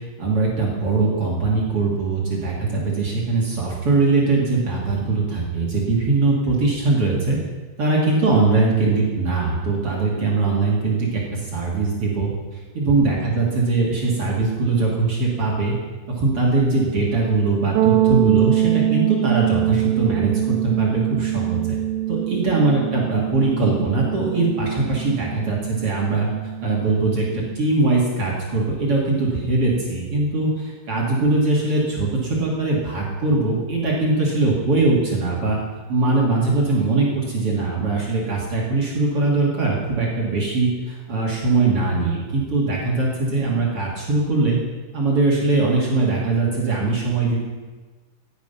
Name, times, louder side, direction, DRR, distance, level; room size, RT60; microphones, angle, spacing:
voice 1, 0.2-7.4 7.8-15.7 16.1-21.8 22.1-26.3 26.6-35.6 35.9-44.6 44.9-47.4, right 3 dB, 40° right, -3 dB, 2.2 m, -21 dB
sound 1, 17.7-27.5, right 14 dB, 80° right, 2.8 m, -23 dB
15.0 x 10.5 x 5.7 m, 1.3 s
omnidirectional pair, 5.4 m